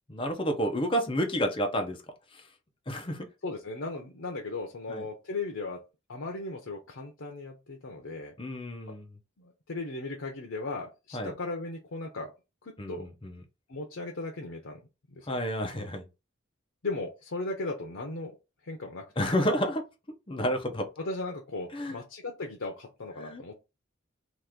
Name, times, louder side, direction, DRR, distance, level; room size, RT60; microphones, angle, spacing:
voice 1, 0.1-2.0 2.9-3.3 4.9-5.0 8.4-9.1 11.1-11.3 12.8-13.4 15.3-16.0 19.2-19.8 20.3-20.9 21.7-22.0 23.2-23.5, equal, 25° left, 0.7 m, -30 dB
voice 2, 3.4-5.8 6.1-8.3 9.4-12.3 12.6-13.1 13.7-14.8 15.1-15.4 16.8-18.4 18.6-19.3 21.0-23.5, left 3 dB, 80° left, 0.7 m, -37 dB
3.0 x 2.5 x 3.5 m
head